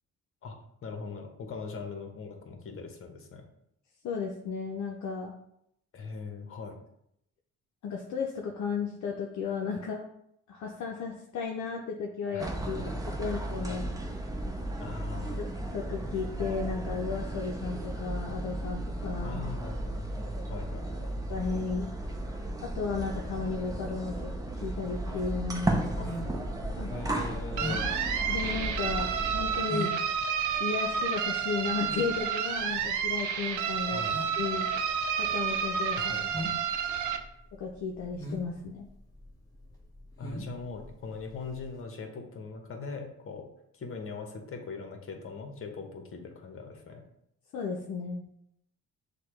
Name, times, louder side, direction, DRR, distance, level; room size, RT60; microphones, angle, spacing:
voice 1, 0.8-3.5 5.9-6.8 12.3-12.5 12.8-12.9 13.4-13.9 14.8-15.4 19.2-21.2 26.0-26.1 26.9-28.0 33.9-34.2 35.9-36.5 40.2-43.5 43.7-47.0, left 4 dB, 45° left, 4 dB, 1.0 m, -41 dB
voice 2, 4.0-5.3 7.8-10.1 10.5-12.8 13.2-13.9 15.4-19.4 21.3-21.9 22.6-25.8 26.7-26.9 28.3-29.9 30.6-34.0 34.4-34.7 35.1-36.1 37.6-38.9 47.5-48.3, left 5 dB, 65° left, 0 dB, 0.6 m, -34 dB
sound 1, 12.4-29.6, right 1 dB, 10° right, 0.6 m, -35 dB
sound 2, 25.4-41.8, left 1 dB, 10° left, 1.0 m, -42 dB
sound 3, 27.6-37.2, right 7 dB, 75° right, 0.6 m, -30 dB
6.6 x 2.2 x 3.1 m, 0.75 s
cardioid pair, 90°, 30 cm